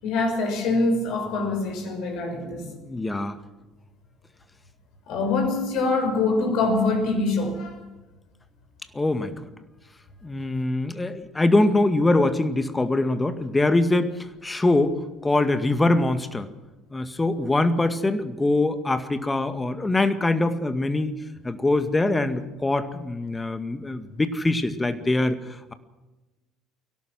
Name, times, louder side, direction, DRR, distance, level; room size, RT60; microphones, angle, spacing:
voice 1, 0.0-2.6 5.1-7.8, left 3 dB, 55° left, 3 dB, 6.3 m, -24 dB
voice 2, 2.3-3.4 8.9-9.5 10.2-14.1 14.4-16.5 16.9-21.1 21.4-25.7, left 2 dB, 15° left, 10 dB, 2.0 m, -23 dB
23.5 x 17.5 x 6.2 m, 1.1 s
figure-of-eight pair, 60°, 0 cm